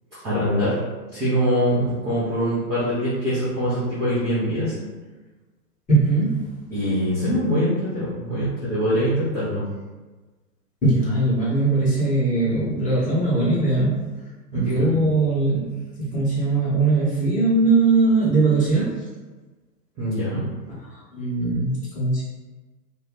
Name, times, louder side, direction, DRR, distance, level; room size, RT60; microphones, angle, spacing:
voice 1, 0.2-0.7 1.1-4.7 6.7-9.6 14.5-15.0 20.0-20.4, equal, 10° right, -13 dB, 0.4 m, -23 dB
voice 2, 5.9-6.5 10.8-14.1 14.5-18.9 20.8-22.2, right 3 dB, 15° left, -8 dB, 1.2 m, -20 dB
2.6 x 2.6 x 3.3 m, 1.3 s
figure-of-eight pair, 110°, 49 cm